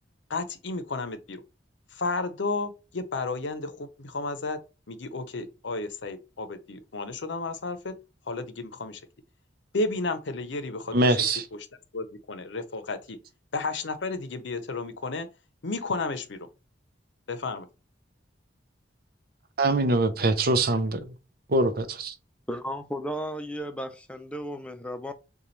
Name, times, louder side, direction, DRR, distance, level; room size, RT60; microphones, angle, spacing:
voice 1, 0.3-1.4 1.9-4.6 4.9-8.0 8.3-9.0 9.7-11.2 11.5-11.7 11.9-13.2 13.5-15.3 15.6-16.5 17.3-17.7, left 3 dB, 75° left, 0.7 m, -32 dB
voice 2, 10.9-11.5 19.6-21.1 21.5-22.1, right 2 dB, 55° right, 0.6 m, -23 dB
voice 3, 22.5-25.1, equal, 5° left, 0.5 m, -34 dB
6.8 x 2.3 x 3.1 m
head